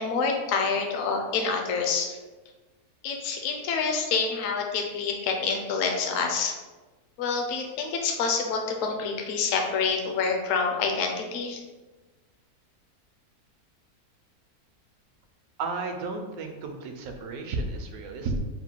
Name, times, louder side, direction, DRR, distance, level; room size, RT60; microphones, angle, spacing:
voice 1, 0.0-2.2 3.0-6.5 7.2-11.6, left 5 dB, 65° left, 2 dB, 0.9 m, -27 dB
voice 2, 15.6-18.4, right 3 dB, 75° right, 4 dB, 1.1 m, -32 dB
4.0 x 2.2 x 4.4 m, 1.2 s
omnidirectional pair, 1.6 m